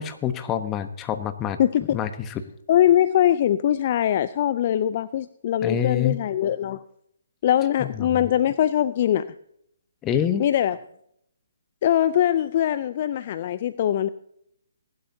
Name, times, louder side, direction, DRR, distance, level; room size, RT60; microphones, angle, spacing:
voice 1, 0.0-1.6 1.9-2.4 5.6-6.2 7.8-8.3 10.0-10.5, left 9 dB, 20° left, 10 dB, 1.0 m, -26 dB
voice 2, 1.6-2.0 2.7-6.8 7.4-9.3 10.4-10.8 11.8-14.1, left 11 dB, 40° left, 15 dB, 0.4 m, -22 dB
20.0 x 12.0 x 2.8 m, 0.72 s
figure-of-eight pair, 140°, 0 cm